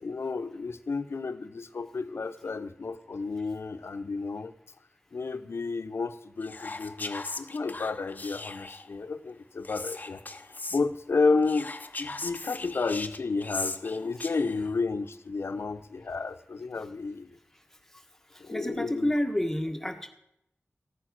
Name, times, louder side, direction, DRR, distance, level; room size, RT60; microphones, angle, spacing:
voice 1, 0.0-4.5 5.1-10.2 10.7-11.7 12.0-17.4 18.4-19.1, left 4 dB, 75° left, 10 dB, 0.8 m, -31 dB
Whispering, 6.4-8.9 9.6-10.8 11.4-14.7, left 3 dB, 40° left, 0.7 m, -38 dB
voice 2, 18.3-20.1, left 1 dB, 10° left, 4 dB, 1.6 m, -29 dB
15.0 x 9.0 x 6.4 m, 0.79 s
wide cardioid pair, 85°, 4 cm